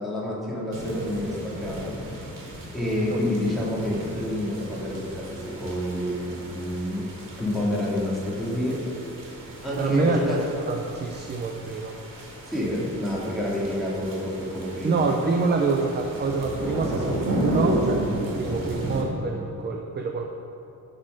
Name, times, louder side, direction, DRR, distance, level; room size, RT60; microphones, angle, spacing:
voice 1, 0.0-2.3 2.7-7.1 7.4-8.8 9.6-10.4 12.4-15.1, left 1 dB, ahead, -7 dB, 2.3 m, -28 dB
sound 1, 0.7-19.0, right 1 dB, 85° right, 2.1 m, -33 dB
voice 2, 9.8-12.0 14.8-20.2, right 3 dB, 30° right, 2 dB, 0.5 m, -26 dB
12.0 x 4.4 x 6.2 m, 3.0 s
wide cardioid pair, 165°, 33 cm